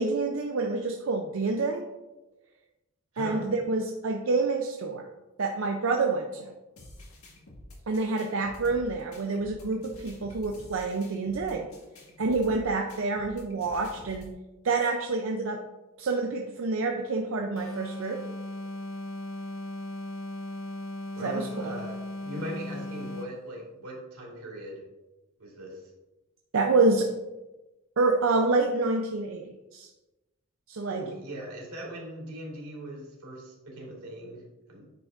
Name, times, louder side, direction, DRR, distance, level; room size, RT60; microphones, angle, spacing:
voice 1, 0.0-1.8 3.2-5.1 5.4-6.5 7.9-11.7 12.2-14.3 14.6-15.6 16.0-18.2 21.2-21.5 26.5-27.1 28.0-29.4 29.7-29.9 30.7-31.0, right 3 dB, 65° right, 3 dB, 0.5 m, -27 dB
voice 2, 3.1-3.5 21.2-24.8 25.4-25.9 30.9-34.9, right 1 dB, 85° right, -1 dB, 2.2 m, -40 dB
sound 1, 6.8-14.3, left 1 dB, 75° left, 1.6 m, -49 dB
sound 2, 17.6-23.5, left 1 dB, 60° left, 0.7 m, -37 dB
9.4 x 5.1 x 2.5 m, 1.1 s
head